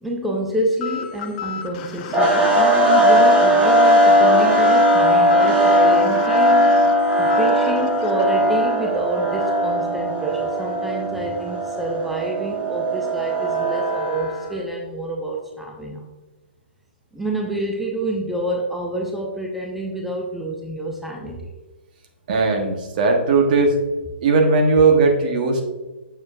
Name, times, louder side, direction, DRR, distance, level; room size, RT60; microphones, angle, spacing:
voice 1, 0.0-6.8 7.2-16.1 17.1-21.5, right 1 dB, ahead, -1 dB, 0.7 m, -28 dB
sound 1, 0.8-8.2, left 8 dB, 40° left, 0.8 m, -35 dB
sound 2, 2.1-14.5, equal, 15° right, 1.3 m, -18 dB
voice 2, 22.3-23.8 24.2-25.6, right 3 dB, 50° right, 3 dB, 1.3 m, -17 dB
7.0 x 6.4 x 2.6 m, 1.2 s
hypercardioid pair, 140°, 6 cm